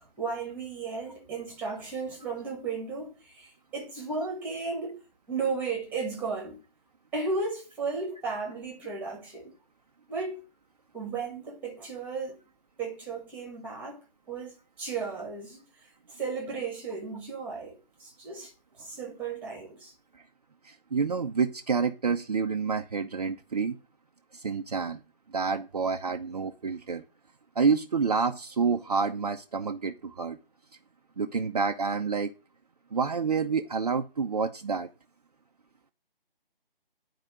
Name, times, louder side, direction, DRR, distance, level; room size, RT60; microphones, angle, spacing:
voice 1, 0.0-5.0 5.3-6.6 7.1-9.5 10.1-10.4 10.9-12.4 12.8-14.0 14.3-15.6 16.1-18.5 18.8-19.9, right 4 dB, 5° right, 1.9 m, -34 dB
voice 2, 20.6-23.8 24.3-25.0 25.3-27.0 27.6-30.4 31.2-32.3 32.9-34.9, right 5 dB, 40° right, 0.7 m, -28 dB
11.0 x 4.9 x 7.8 m
figure-of-eight pair, 150°, 29 cm